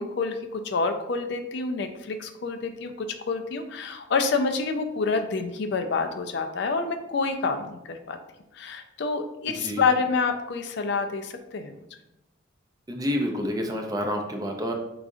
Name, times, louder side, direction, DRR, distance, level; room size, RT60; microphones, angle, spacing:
voice 1, 0.0-8.2 8.5-11.8, left 4 dB, 55° left, 7 dB, 0.4 m, -28 dB
voice 2, 9.5-9.8 12.9-14.7, equal, 20° right, 3 dB, 0.5 m, -28 dB
4.8 x 3.8 x 2.5 m, 0.88 s
head